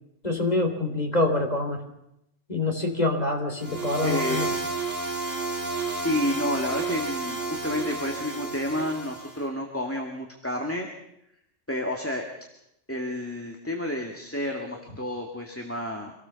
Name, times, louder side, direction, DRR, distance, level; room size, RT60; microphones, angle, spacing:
voice 1, 0.2-1.8 2.5-4.5, left 2 dB, 30° left, 4 dB, 3.6 m, -25 dB
sound 1, 3.6-9.4, right 3 dB, 65° right, 3.4 m, -31 dB
voice 2, 4.0-4.4 6.0-10.9 11.7-12.3 12.9-16.1, left 1 dB, 10° left, 1 dB, 2.1 m, -30 dB
26.0 x 18.0 x 7.1 m, 0.83 s
omnidirectional pair, 1.3 m